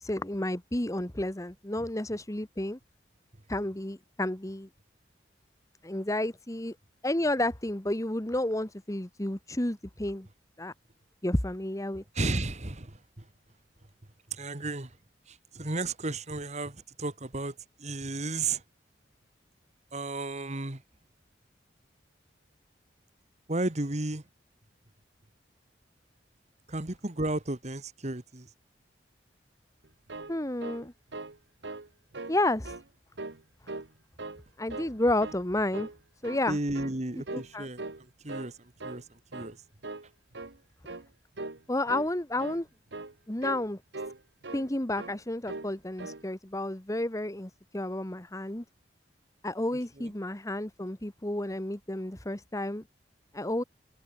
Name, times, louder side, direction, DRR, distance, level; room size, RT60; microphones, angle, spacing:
voice 1, 0.0-2.8 3.5-4.7 5.8-6.7 7.0-10.3 10.6-10.7 11.2-12.0 30.3-30.9 32.3-32.7 34.6-35.9 36.2-36.6 37.3-37.7 41.7-42.7 43.3-43.8 44.5-48.6 49.4-52.8 53.3-53.6, left 1 dB, 20° left, 1.4 m, -31 dB
voice 2, 12.1-13.2 14.3-14.9 15.3-18.6 19.9-20.8 23.5-24.2 26.7-28.5 36.5-37.8 38.2-38.5 38.8-39.0 39.3-39.6 50.0-50.1, right 2 dB, 40° right, 1.7 m, -33 dB
sound 1, 29.8-31.4 31.6-31.9 32.1-32.8 33.2-33.9 34.2-34.9 35.2-35.4 35.7-36.5 36.7-37.0 37.3-37.5 37.8-38.5 38.8-39.0 39.3-39.6 39.8-40.1 40.3-40.6 40.9-41.1 41.4-41.6 41.9-42.1 42.4-42.6 42.9-43.1 43.4-43.7 43.9-44.7 45.0-45.2 45.5-45.7 46.0-46.2, right 3 dB, 70° right, 1.4 m, -40 dB
head